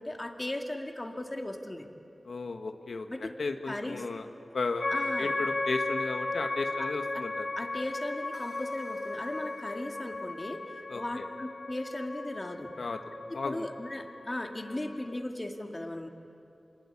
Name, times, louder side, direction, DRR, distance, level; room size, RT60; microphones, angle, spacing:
voice 1, 0.0-1.9 3.1-3.4 3.7-4.1 4.9-5.4 6.8-6.9 7.1-7.3 7.6-10.6 10.9-12.7 13.3-16.1, left 1 dB, 30° left, 3 dB, 2.2 m, -37 dB
voice 2, 2.2-4.3 4.5-4.9 5.2-7.5 10.9-11.2 12.8-13.0 13.3-13.7, left 3 dB, 85° left, 5 dB, 1.3 m, -34 dB
sound 1, 4.8-15.3, left 2 dB, 45° left, 1.0 m, -36 dB
27.0 x 20.5 x 9.8 m, 2.8 s
wide cardioid pair, 70°, 0 cm